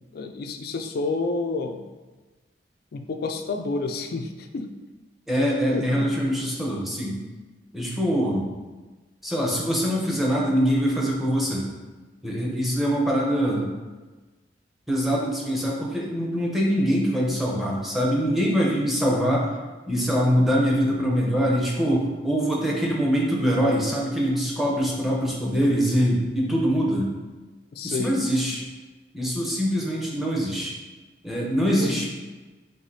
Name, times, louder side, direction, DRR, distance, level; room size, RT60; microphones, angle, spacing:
voice 1, 0.1-1.8 2.9-4.7 5.7-6.1 27.7-28.2 31.8-32.1, left 3 dB, 60° left, 6 dB, 0.4 m, -29 dB
voice 2, 5.3-7.2 7.7-8.5 9.2-11.7 12.2-13.7 14.9-19.5 19.9-27.1 27.8-28.6 29.1-30.7 31.2-32.1, equal, ahead, -3 dB, 0.8 m, -23 dB
4.8 x 3.3 x 2.7 m, 1.2 s
head